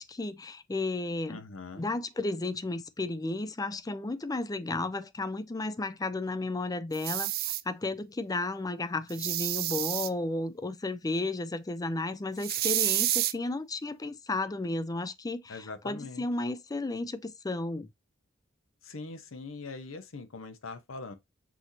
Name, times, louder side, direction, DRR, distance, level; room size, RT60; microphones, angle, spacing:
voice 1, 0.0-1.4 1.8-17.9, left 2 dB, 20° left, 0.4 m, -33 dB
voice 2, 1.3-1.9 15.5-16.3 18.8-21.1, left 3 dB, 85° left, 0.8 m, -42 dB
sound 1, 6.9-7.6 9.1-10.1 12.4-13.3, right 15 dB, 50° right, 0.4 m, -29 dB
6.1 x 2.7 x 3.1 m
head